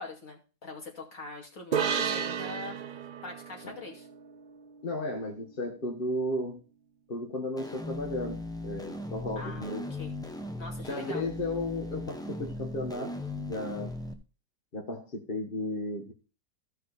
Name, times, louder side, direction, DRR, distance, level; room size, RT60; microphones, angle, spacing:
voice 1, 0.0-2.8 3.2-4.1 9.4-10.1 10.6-11.2, left 3 dB, 60° left, 1 dB, 2.8 m, -43 dB
sound 1, 1.7-5.2, right 7 dB, 70° right, 0.4 m, -33 dB
voice 2, 4.8-6.6 7.1-9.8 10.8-13.9 14.7-16.1, left 1 dB, 35° left, 2 dB, 1.6 m, -34 dB
sound 2, 7.6-14.1, left 2 dB, 5° left, 0.7 m, -38 dB
15.0 x 5.5 x 4.0 m, 0.34 s
omnidirectional pair, 1.6 m